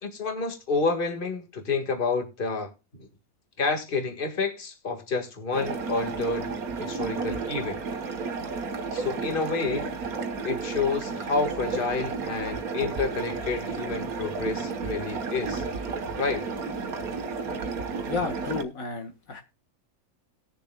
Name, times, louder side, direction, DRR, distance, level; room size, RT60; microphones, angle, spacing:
voice 1, 0.0-2.7 3.0-3.1 3.6-6.5 6.8-7.8 8.9-9.9 10.4-15.6 16.2-16.5, left 4 dB, 35° left, 2.0 m, -29 dB
sound 1, 5.5-18.6, right 4 dB, 85° right, 1.6 m, -32 dB
voice 2, 18.0-19.4, left 4 dB, 70° left, 1.8 m, -32 dB
19.5 x 6.8 x 2.2 m
omnidirectional pair, 1.5 m